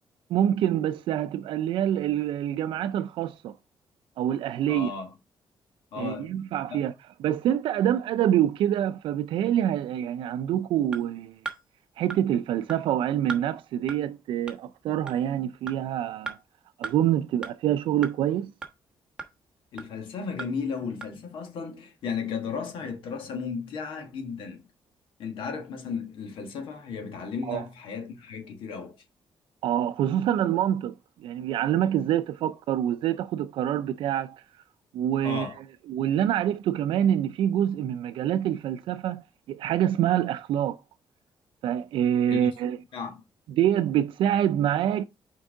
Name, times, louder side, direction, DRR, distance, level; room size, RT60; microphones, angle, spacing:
voice 1, 0.3-3.6 4.2-4.9 6.0-6.9 7.2-11.4 12.0-16.4 16.8-18.5 27.4-27.7 29.6-31.0 31.2-34.4 34.9-35.5 35.9-39.2 39.5-40.8 41.6-42.8 43.5-45.0, right 11 dB, 85° right, 0.4 m, -26 dB
voice 2, 4.7-5.1 5.9-6.3 6.7-6.8 19.7-24.6 25.2-29.0 35.2-35.6 42.3-43.2, left 5 dB, 80° left, 1.6 m, -35 dB
sound 1, 10.9-11.0 11.5-11.6 12.1-12.2 12.7-12.8 13.3-13.4 13.9-14.0 14.5-14.6 15.1-15.2 15.7-15.8 16.3-16.4 16.8-16.9 17.4-17.5 18.0-18.1 18.6-18.7 19.2-19.3 19.8-19.9 20.4-20.5 21.0-21.1, right 4 dB, 10° right, 1.1 m, -35 dB
6.3 x 4.6 x 3.5 m
cardioid pair, 170°, 9 cm